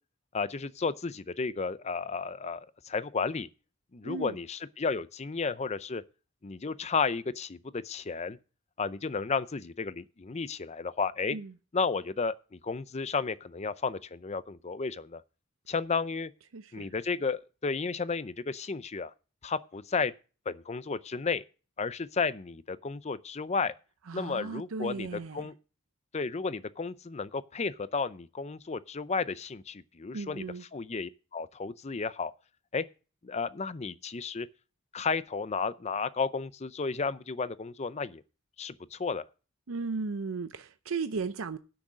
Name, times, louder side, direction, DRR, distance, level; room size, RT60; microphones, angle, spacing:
voice 1, 0.3-3.5 3.9-6.0 6.4-8.4 8.8-11.4 11.7-15.2 15.7-16.3 16.7-19.1 19.4-20.1 20.5-21.4 21.8-23.7 24.1-25.1 25.3-25.5 26.1-30.4 30.7-32.3 32.7-32.8 33.2-34.5 34.9-38.2 38.6-39.2, left 4 dB, 30° left, 0.5 m, -33 dB
voice 2, 4.0-4.4 11.3-11.5 16.5-16.9 24.1-25.5 30.1-30.6 39.7-41.6, right 4 dB, 85° right, 0.6 m, -36 dB
10.0 x 6.3 x 7.3 m
head